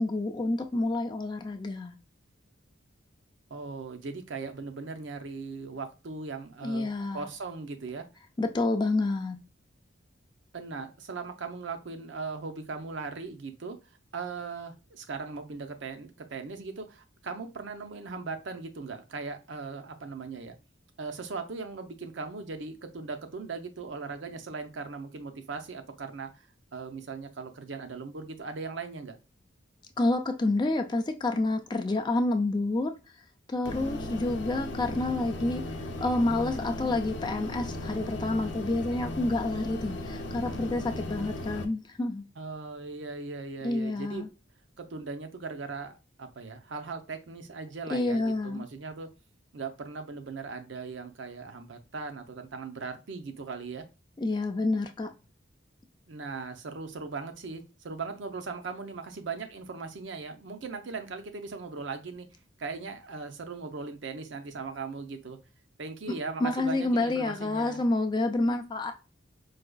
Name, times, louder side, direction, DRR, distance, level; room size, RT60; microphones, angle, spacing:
voice 1, 0.0-2.0 6.6-7.3 8.4-9.4 30.0-32.9 33.5-35.6 36.0-42.2 43.6-44.3 47.9-48.6 54.2-55.1 66.1-66.2 66.4-68.9, left 2 dB, 20° left, 0.3 m, -28 dB
voice 2, 3.5-8.1 10.5-13.8 14.1-20.6 21.0-26.5 26.7-29.2 42.4-44.2 44.8-49.1 49.5-53.9 56.1-62.3 62.6-65.4 65.8-67.8, right 4 dB, 70° right, 0.6 m, -39 dB
sound 1, 33.7-41.7, left 1 dB, 65° left, 0.6 m, -36 dB
4.7 x 2.3 x 2.3 m
head